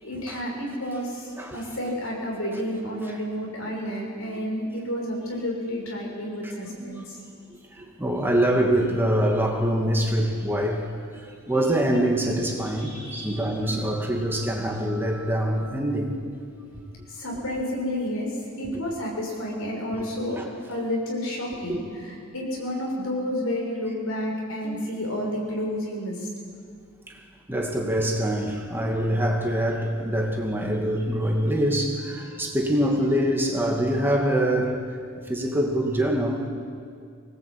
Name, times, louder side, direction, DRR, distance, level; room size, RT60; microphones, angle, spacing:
voice 1, 0.0-1.3 1.5-7.2 11.5-11.8 12.6-14.1 17.1-20.4 20.7-26.3 32.0-32.4 32.8-33.2, equal, 75° left, -1 dB, 6.8 m, -31 dB
voice 2, 6.8-7.1 7.8-10.9 11.1-16.1 20.4-20.5 21.7-21.8 24.6-24.8 27.1-27.2 27.5-34.8 35.2-36.5, right 1 dB, 10° right, 0 dB, 2.4 m, -24 dB
25.5 x 19.0 x 8.7 m, 2.3 s
head